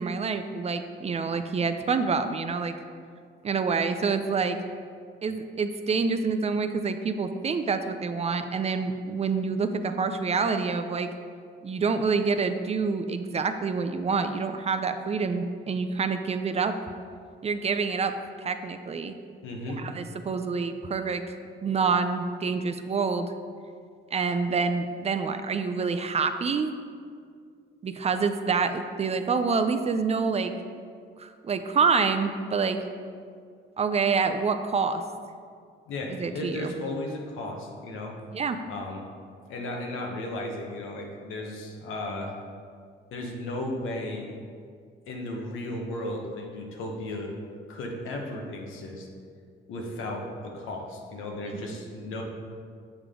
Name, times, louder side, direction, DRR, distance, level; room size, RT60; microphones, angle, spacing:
voice 1, 0.0-2.7 3.4-4.6 5.2-11.1 11.6-16.8 17.4-18.1 18.4-19.1 19.8-21.2 21.6-23.3 24.1-26.7 27.8-30.5 31.2-32.8 33.8-35.0 36.1-36.7 38.3-38.6 51.5-51.6, right 5 dB, 30° right, 8 dB, 0.4 m, -27 dB
voice 2, 19.4-19.8 35.9-38.2 38.7-39.0 39.5-42.3 43.1-44.3 45.1-47.3 47.7-49.1 49.7-52.2, left 1 dB, 85° left, 1 dB, 1.1 m, -35 dB
7.1 x 5.1 x 3.7 m, 2.2 s
cardioid pair, 90°, 20 cm